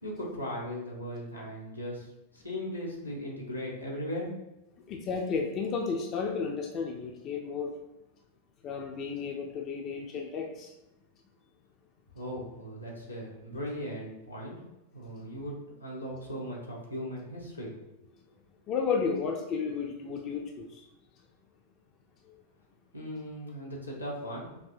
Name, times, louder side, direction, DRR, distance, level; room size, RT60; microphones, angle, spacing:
voice 1, 0.0-2.1 2.3-4.3 4.7-4.8 12.1-14.6 14.9-15.5 15.8-17.8 22.9-24.5, equal, 85° left, -3 dB, 1.0 m, -38 dB
voice 2, 4.9-7.7 8.6-10.7 18.7-20.8, left 5 dB, 35° left, 2 dB, 0.5 m, -32 dB
5.4 x 2.6 x 2.5 m, 0.92 s
figure-of-eight pair, 90°, 0 cm